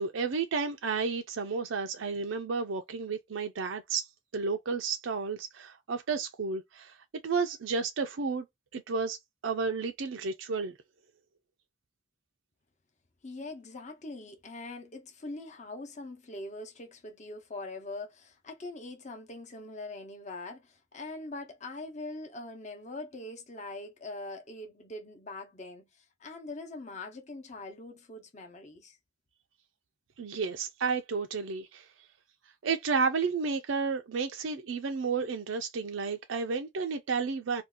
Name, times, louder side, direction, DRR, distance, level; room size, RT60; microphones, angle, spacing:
voice 1, 0.0-4.1 4.3-7.0 7.2-8.5 8.7-9.2 9.4-10.8 30.2-32.1 32.6-37.6, right 5 dB, 80° right, 0.5 m, -32 dB
voice 2, 13.2-29.0, left 2 dB, 35° left, 0.8 m, -42 dB
2.6 x 2.4 x 3.6 m
head